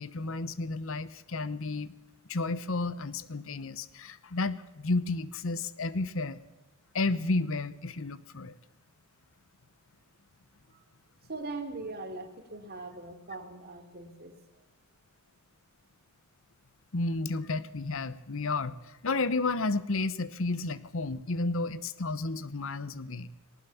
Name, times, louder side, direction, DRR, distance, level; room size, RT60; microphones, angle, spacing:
voice 1, 0.0-1.9 2.3-6.4 6.9-8.5 16.9-23.3, left 3 dB, 65° left, 16 dB, 0.9 m, -32 dB
voice 2, 11.3-14.3, right 3 dB, 45° right, 6 dB, 3.0 m, -40 dB
19.5 x 18.5 x 7.1 m, 1.1 s
head